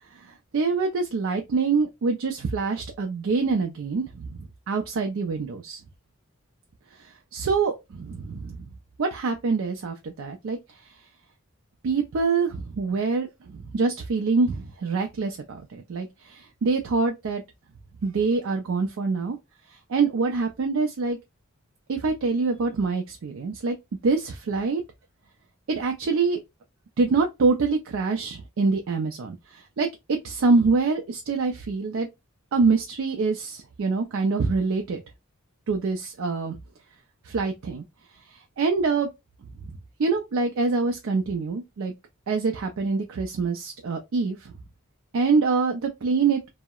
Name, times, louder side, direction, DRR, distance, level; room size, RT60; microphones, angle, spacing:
voice 1, 0.1-5.8 6.9-8.6 9.0-10.6 11.8-17.4 18.0-19.4 19.9-21.2 21.9-23.8 24.0-24.8 25.7-26.4 27.0-32.1 32.5-35.0 35.7-36.6 37.2-37.8 38.3-39.1 39.6-39.7 40.0-41.9 42.3-44.5 45.1-46.5, right 4 dB, 70° right, 0.4 m, -25 dB
2.7 x 2.0 x 2.2 m
head